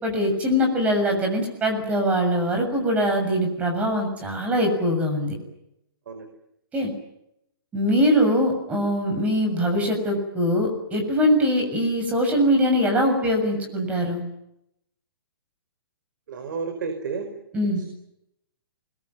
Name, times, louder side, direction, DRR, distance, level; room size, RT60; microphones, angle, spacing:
voice 1, 0.0-5.4 6.7-6.9 7.7-14.2 17.5-17.8, equal, 10° right, 3 dB, 6.9 m, -22 dB
voice 2, 16.3-17.3 17.8-17.9, right 5 dB, 55° right, 7 dB, 4.9 m, -31 dB
28.5 x 22.0 x 9.3 m, 0.81 s
hypercardioid pair, 170°, 12 cm